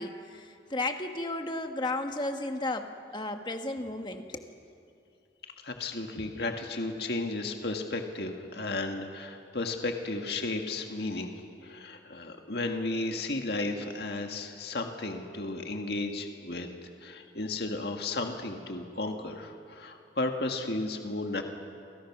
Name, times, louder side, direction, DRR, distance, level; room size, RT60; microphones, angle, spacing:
voice 1, 0.0-4.5, left 2 dB, 25° left, 5 dB, 1.4 m, -34 dB
voice 2, 5.6-11.3 11.6-21.4, left 2 dB, 60° left, 3 dB, 1.9 m, -34 dB
29.5 x 25.0 x 6.1 m, 2.5 s
head